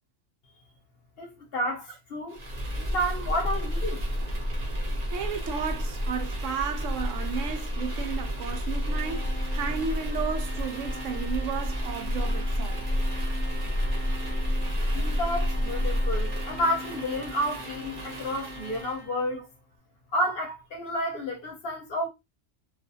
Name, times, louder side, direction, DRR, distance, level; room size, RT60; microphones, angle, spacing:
voice 1, 1.2-2.4 2.8-4.0 14.9-19.5 20.1-22.1, equal, 55° left, 0.8 m, -30 dB
sound 1, 2.3-19.0, equal, 40° right, 0.7 m, -30 dB
voice 2, 5.1-12.8 15.9-16.0, right 6 dB, 75° right, 0.9 m, -34 dB
Organ, 8.8-19.5, equal, 20° right, 0.3 m, -44 dB
2.4 x 2.4 x 2.6 m
omnidirectional pair, 1.3 m